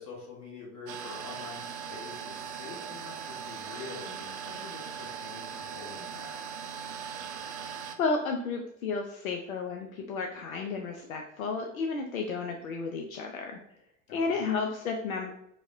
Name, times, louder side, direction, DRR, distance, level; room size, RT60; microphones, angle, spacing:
voice 1, 0.0-6.4 14.1-14.5, left 4 dB, 45° left, -2 dB, 1.4 m, -46 dB
sound 1, 0.9-8.0, right 7 dB, 55° right, 0.5 m, -39 dB
voice 2, 7.4-7.7 8.0-13.6 14.1-15.3, left 4 dB, 75° left, 3 dB, 0.5 m, -32 dB
4.7 x 2.1 x 2.5 m, 0.80 s
figure-of-eight pair, 80°, 42 cm